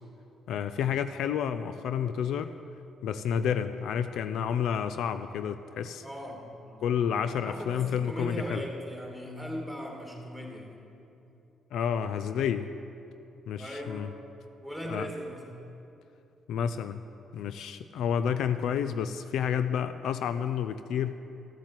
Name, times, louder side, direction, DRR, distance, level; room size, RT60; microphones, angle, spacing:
voice 1, 0.5-2.5 3.0-6.0 6.8-8.6 11.7-12.7 13.5-14.1 14.9-15.1 16.5-17.0 17.3-21.2, left 8 dB, 80° left, 11 dB, 0.4 m, -30 dB
voice 2, 6.0-6.8 7.3-10.8 13.6-14.2 14.6-15.5, equal, 10° left, -1 dB, 2.5 m, -39 dB
13.0 x 7.4 x 7.4 m, 2.8 s
cardioid pair, 90°, 0 cm